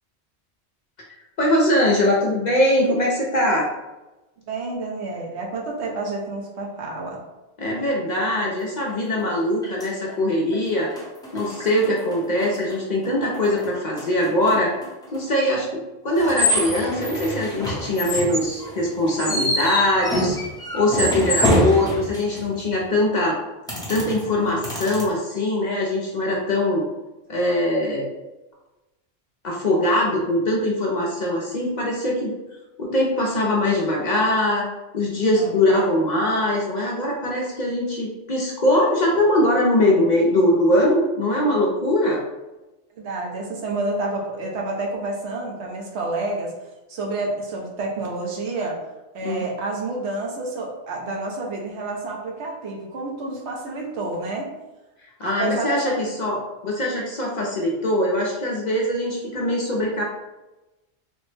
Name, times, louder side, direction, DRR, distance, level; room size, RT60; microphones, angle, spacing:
voice 1, 1.4-3.7 7.6-10.9 11.3-14.7 15.1-20.4 20.7-23.4 23.9-26.8 27.3-28.1 29.4-32.3 32.8-34.6 34.9-42.2 49.2-49.4 55.2-60.0, left 1 dB, 50° left, -2 dB, 0.6 m, -22 dB
voice 2, 4.5-7.2 35.4-35.5 43.0-46.5 46.9-48.8 49.1-54.5 55.2-56.1, right 2 dB, 80° right, -1 dB, 1.0 m, -29 dB
sound 1, 8.9-9.0 9.6-10.1 10.5-10.6 10.9-12.8 13.0-15.2 16.1-22.6 23.7-25.0, equal, 5° left, 0.6 m, -26 dB
3.4 x 2.0 x 3.1 m, 1.0 s
omnidirectional pair, 1.1 m